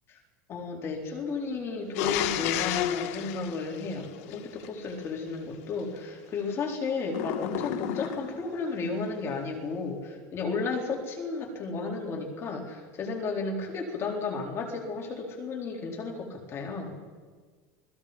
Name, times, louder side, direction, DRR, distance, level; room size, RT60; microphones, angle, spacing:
voice 1, 0.5-17.0, left 4 dB, 35° left, 0 dB, 4.3 m, -33 dB
sound 1, 1.9-4.7 7.1-8.5, left 12 dB, 80° left, 1.5 m, -32 dB
28.5 x 20.5 x 5.4 m, 1.5 s
cardioid pair, 145°, 8 cm